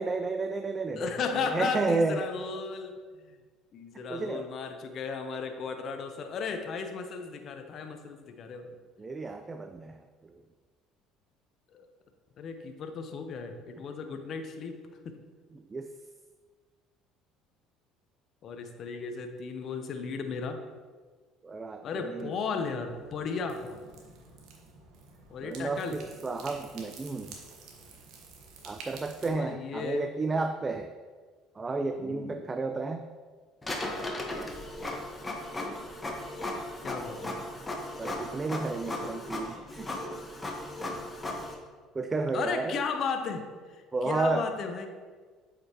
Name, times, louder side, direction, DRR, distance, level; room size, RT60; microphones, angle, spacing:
voice 1, 0.0-2.3 4.1-4.5 9.0-10.0 15.5-15.9 21.4-22.4 25.4-27.3 28.6-30.9 31.6-33.0 38.0-39.9 41.9-42.8 43.9-44.5, right 3 dB, 25° right, 7 dB, 0.4 m, -32 dB
voice 2, 0.9-3.0 3.3-3.4 3.7-8.7 11.7-11.8 12.4-14.8 18.4-20.6 21.8-23.8 25.3-26.0 29.2-30.1 32.0-32.5 36.8-37.3 42.3-44.9, left 5 dB, 55° left, 6 dB, 0.7 m, -35 dB
sound 1, 22.9-29.3, right 4 dB, 70° right, 1.1 m, -50 dB
Printer, 33.6-41.5, left 1 dB, 20° left, 1.3 m, -36 dB
7.7 x 5.1 x 2.9 m, 1.5 s
hypercardioid pair, 70°, 0 cm